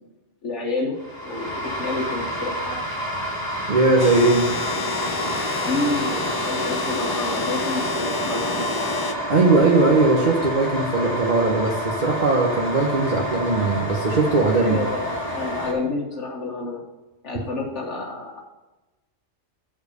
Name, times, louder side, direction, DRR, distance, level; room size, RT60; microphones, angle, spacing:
voice 1, 0.4-1.5 1.8-2.8 5.7-8.7 14.6-16.8 17.2-18.4, left 3 dB, 75° left, -2 dB, 1.5 m, -29 dB
sound 1, 1.0-15.7, equal, 15° left, 2.0 m, -29 dB
voice 2, 3.7-4.5 9.3-14.8, right 3 dB, 40° right, -1 dB, 1.0 m, -19 dB
sound 2, 4.0-9.1, left 3 dB, 35° left, 0.4 m, -29 dB
7.6 x 4.7 x 6.6 m, 1.1 s
omnidirectional pair, 1.2 m